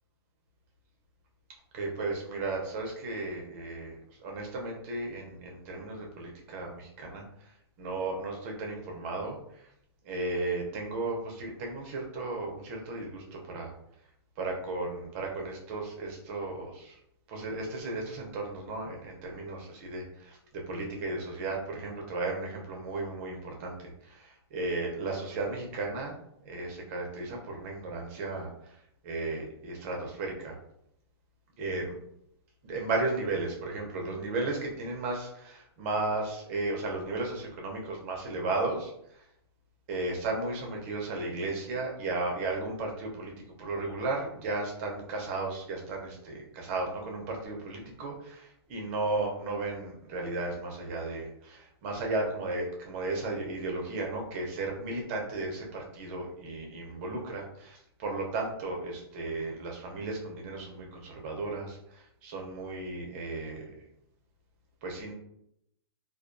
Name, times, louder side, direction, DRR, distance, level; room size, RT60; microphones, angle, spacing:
voice 1, 1.7-7.2 7.8-9.4 10.1-13.7 14.4-16.9 17.3-23.7 24.2-26.1 26.5-28.5 29.0-30.6 31.6-31.9 32.6-38.9 39.9-43.3 43.6-61.8 62.2-63.7 64.8-65.1, right 2 dB, 30° right, 0 dB, 0.5 m, -34 dB
2.3 x 2.2 x 2.4 m, 0.75 s
hypercardioid pair, 155°, 14 cm